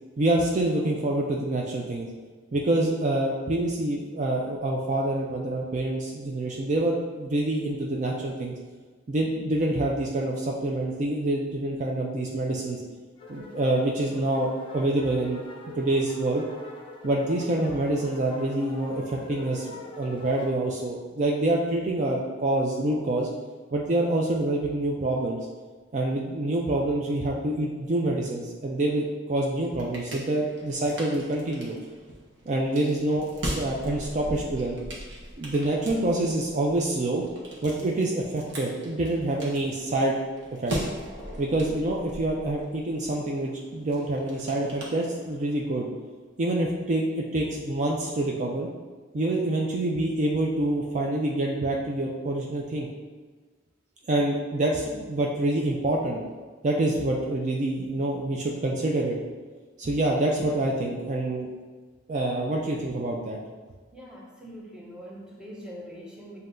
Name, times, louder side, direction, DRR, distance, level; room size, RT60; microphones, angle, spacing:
voice 1, 0.2-2.1 2.5-8.6 9.1-12.8 13.3-15.4 15.8-16.4 17.0-23.3 23.7-25.4 25.9-31.8 32.5-34.8 35.4-37.2 37.6-40.2 40.6-40.7 41.4-45.9 46.4-48.7 49.1-52.9 54.1-56.2 56.6-59.1 59.8-61.5 62.1-63.4, right 1 dB, 40° right, -2 dB, 0.4 m, -26 dB
sound 1, 13.2-20.6, left 2 dB, 30° left, 0.7 m, -44 dB
sound 2, 29.4-45.6, right 1 dB, 65° right, 1.0 m, -40 dB
voice 2, 63.9-66.4, equal, 5° right, -4 dB, 0.8 m, -43 dB
7.3 x 2.8 x 2.6 m, 1.4 s
head